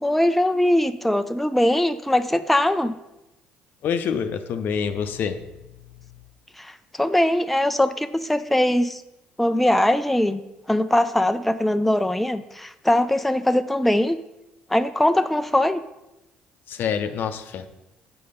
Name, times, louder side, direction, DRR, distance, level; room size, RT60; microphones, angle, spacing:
voice 1, 0.0-3.0 6.6-9.0 9.4-10.4 10.7-14.2 14.7-15.8, left 1 dB, 5° left, 9 dB, 0.4 m, -21 dB
voice 2, 3.8-5.4 16.7-17.7, left 7 dB, 55° left, 9 dB, 0.6 m, -26 dB
6.9 x 5.0 x 5.3 m, 0.95 s
hypercardioid pair, 50°, 4 cm